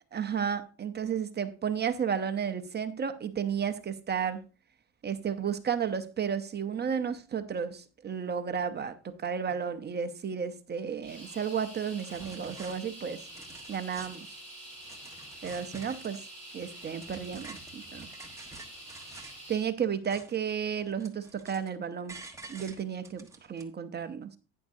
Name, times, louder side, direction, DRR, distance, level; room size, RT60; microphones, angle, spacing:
voice 1, 0.1-4.4 5.0-13.2 13.7-14.3 15.4-16.2 16.5-18.1 19.5-22.2 22.5-24.3, right 7 dB, 20° right, 0.7 m, -33 dB
sound 1, 11.0-19.7, right 1 dB, 15° left, 6.4 m, -47 dB
sound 2, 11.5-11.6 12.0-12.8 13.2-14.3 14.7-16.2 16.6-19.4 19.8-20.5 20.8-21.7 22.1-23.6, right 3 dB, 5° right, 1.2 m, -49 dB
11.0 x 9.6 x 2.7 m
cardioid pair, 140°, 46 cm